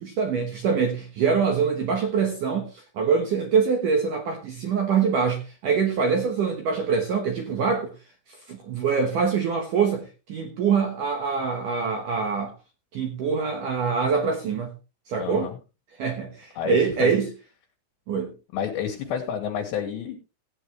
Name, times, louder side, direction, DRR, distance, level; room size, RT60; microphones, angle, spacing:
voice 1, 0.0-7.9 8.5-12.5 12.9-14.7 15.1-15.5 16.0-17.3 18.1-18.3, right 5 dB, 80° right, 1.9 m, -24 dB
voice 2, 15.2-15.5 16.6-17.1 18.5-20.2, left 8 dB, 65° left, 3.5 m, -30 dB
16.5 x 9.4 x 3.1 m
omnidirectional pair, 5.8 m